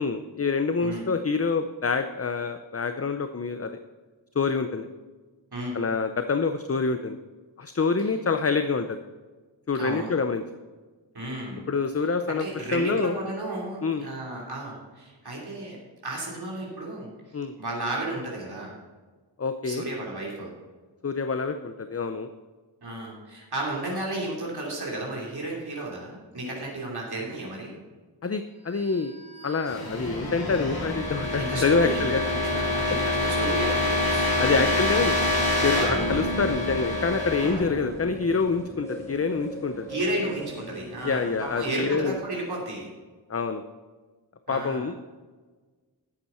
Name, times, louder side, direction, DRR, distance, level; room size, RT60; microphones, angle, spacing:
voice 1, 0.0-3.7 4.4-4.9 5.7-7.2 7.6-9.0 9.7-10.4 11.7-13.1 13.8-14.1 17.3-17.5 19.4-19.8 21.0-22.3 28.2-29.2 29.4-32.2 34.1-35.2 35.6-39.9 41.0-42.2 43.3-43.6 44.5-45.0, left 4 dB, 30° left, 8 dB, 0.6 m, -26 dB
voice 2, 9.7-10.1 11.1-11.6 12.3-15.8 16.0-17.1 17.6-18.7 19.6-20.5 22.8-27.7 31.3-34.5 35.7-35.9 39.9-42.9 44.5-44.8, right 1 dB, 55° right, -3 dB, 3.0 m, -33 dB
sound 1, 29.0-38.7, left 1 dB, 50° left, 3.1 m, -27 dB
sound 2, 35.9-42.1, right 1 dB, 5° left, 3.7 m, -41 dB
12.0 x 8.4 x 4.4 m, 1.3 s
wide cardioid pair, 60°, 45 cm